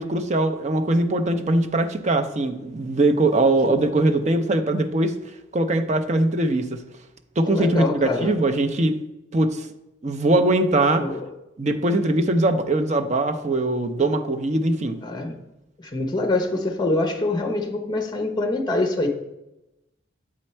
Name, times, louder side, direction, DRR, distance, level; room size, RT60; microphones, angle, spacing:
voice 1, 0.0-5.2 5.5-6.8 7.4-9.0 9.3-9.7 10.0-11.1 11.6-15.0, right 2 dB, 35° right, 7 dB, 0.5 m, -21 dB
voice 2, 7.5-8.3 11.0-11.3 15.0-15.4 15.8-19.1, left 2 dB, 20° left, 5 dB, 0.7 m, -25 dB
7.5 x 4.3 x 4.4 m, 0.94 s
head